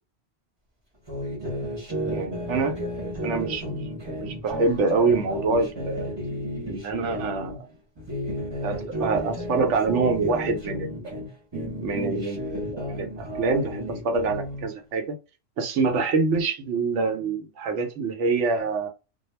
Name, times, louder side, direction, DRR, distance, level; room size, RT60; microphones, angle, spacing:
sound 1, 1.1-7.6 8.0-11.3 11.5-14.7, equal, 25° right, 0.8 m, -32 dB
voice 1, 2.1-2.8 3.2-3.8 4.2-6.1 6.7-7.7 8.6-11.1 11.8-15.1 15.6-18.9, right 4 dB, 75° right, 0.9 m, -26 dB
2.2 x 2.0 x 3.1 m
omnidirectional pair, 1.2 m